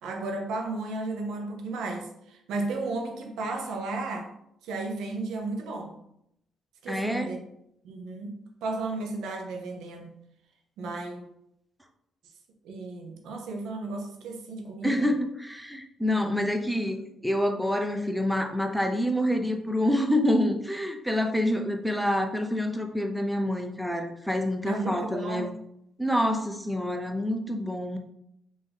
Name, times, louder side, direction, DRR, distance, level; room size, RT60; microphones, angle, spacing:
voice 1, 0.0-4.3 4.6-5.9 6.8-7.4 7.8-10.1 10.8-11.2 12.6-15.1 16.1-16.3 24.7-25.5, right 2 dB, 85° right, 2 dB, 0.7 m, -34 dB
voice 2, 6.9-7.3 14.8-25.5 26.0-28.0, left 1 dB, ahead, 4 dB, 0.4 m, -27 dB
3.6 x 2.6 x 3.4 m, 0.76 s
cardioid pair, 90°, 0 cm